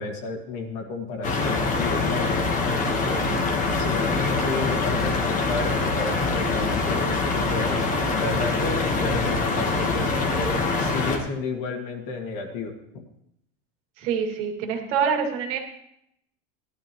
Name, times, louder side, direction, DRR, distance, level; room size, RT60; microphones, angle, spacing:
voice 1, 0.0-3.2 3.7-7.0 7.3-7.8 8.1-13.0, left 3 dB, 45° left, 3 dB, 2.0 m, -32 dB
sound 1, 1.2-11.2, left 3 dB, 20° left, 1.2 m, -24 dB
voice 2, 14.0-15.6, right 6 dB, 60° right, 3 dB, 2.4 m, -25 dB
16.5 x 12.0 x 3.0 m, 0.76 s
supercardioid pair, 170°, 40 cm